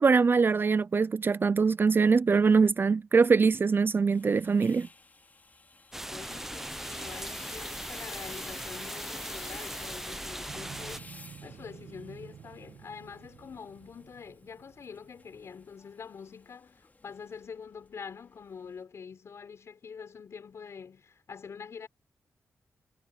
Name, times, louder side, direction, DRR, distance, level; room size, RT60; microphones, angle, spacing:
voice 1, 0.0-4.9, right 5 dB, 45° right, 0.5 m, -23 dB
sound 1, 4.1-18.8, left 3 dB, 35° left, 4.1 m, -51 dB
sound 2, 5.9-11.0, right 1 dB, 5° right, 0.6 m, -39 dB
voice 2, 6.1-11.1 11.4-21.9, left 6 dB, 70° left, 5.4 m, -45 dB
Motorcycle, 10.5-15.7, right 8 dB, 90° right, 1.7 m, -50 dB
cardioid pair, 65°, 5 cm